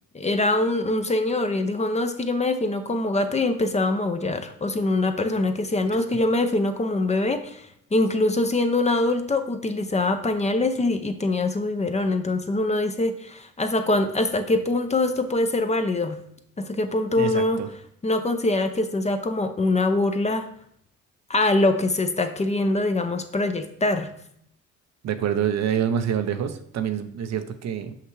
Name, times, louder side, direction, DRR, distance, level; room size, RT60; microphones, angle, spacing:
voice 1, 0.1-16.2 16.6-17.6 18.0-20.5 21.3-24.1, left 2 dB, 20° left, 7 dB, 0.6 m, -23 dB
voice 2, 17.2-17.7 25.0-28.0, right 8 dB, 60° right, 9 dB, 0.7 m, -26 dB
5.8 x 5.7 x 3.2 m, 0.71 s
cardioid pair, 90°, 30 cm